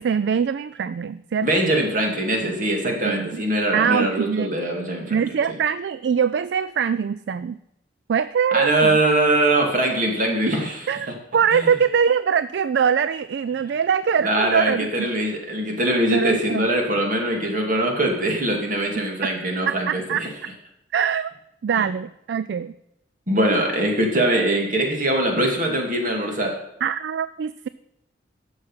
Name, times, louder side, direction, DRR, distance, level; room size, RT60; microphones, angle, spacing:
voice 1, 0.0-1.5 3.0-3.4 3.7-4.5 5.1-7.6 8.1-9.0 10.5-10.6 10.9-15.1 16.1-16.7 19.2-19.3 19.7-20.3 20.9-21.3 21.6-22.7 26.8-27.7, right 7 dB, 65° right, 15 dB, 0.3 m, -23 dB
voice 2, 1.4-5.6 8.5-10.9 11.5-11.7 14.2-20.3 21.8-21.9 23.3-26.6, right 1 dB, 45° right, 1 dB, 2.4 m, -22 dB
11.5 x 7.2 x 5.6 m, 0.84 s
head